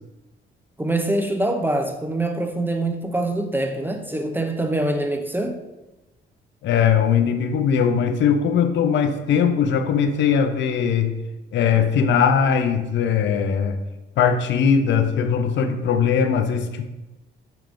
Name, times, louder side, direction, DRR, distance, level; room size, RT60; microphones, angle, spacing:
voice 1, 0.8-5.6, right 1 dB, 10° right, 0.4 m, -24 dB
voice 2, 6.6-11.1 11.5-13.8 14.2-16.9, left 7 dB, 65° left, 0.5 m, -20 dB
4.8 x 3.4 x 2.5 m
cardioid pair, 90°, 20 cm